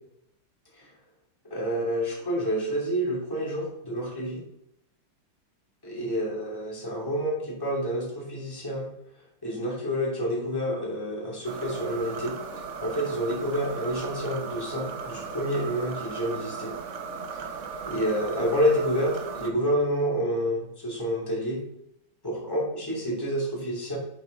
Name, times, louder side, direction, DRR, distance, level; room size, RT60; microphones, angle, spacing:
voice 1, 1.5-4.4 5.8-8.9 9.4-12.3 12.8-16.7 17.3-17.4 17.8-21.6 22.2-24.0, equal, 10° left, -5 dB, 2.8 m, -28 dB
sound 1, 11.4-19.5, right 5 dB, 50° right, 0.9 m, -37 dB
8.3 x 6.2 x 3.9 m, 0.80 s
omnidirectional pair, 2.2 m